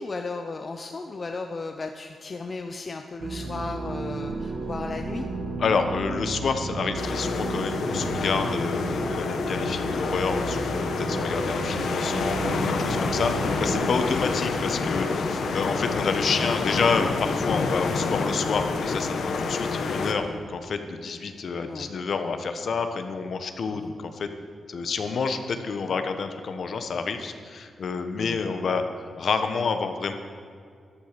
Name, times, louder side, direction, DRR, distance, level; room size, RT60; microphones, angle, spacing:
voice 1, 0.0-5.2 14.1-14.3 21.6-21.9 23.7-23.8 28.2-28.4, left 3 dB, 30° left, 5 dB, 0.7 m, -35 dB
sound 1, 3.2-13.9, right 3 dB, 65° right, 2.2 m, -33 dB
voice 2, 5.6-13.3 13.6-24.3 24.7-28.8 29.2-30.1, left 5 dB, 55° left, 8 dB, 1.2 m, -28 dB
sound 2, 7.0-20.1, left 4 dB, 70° left, 1.4 m, -28 dB
13.0 x 12.5 x 6.9 m, 2.3 s
wide cardioid pair, 160°, 0 cm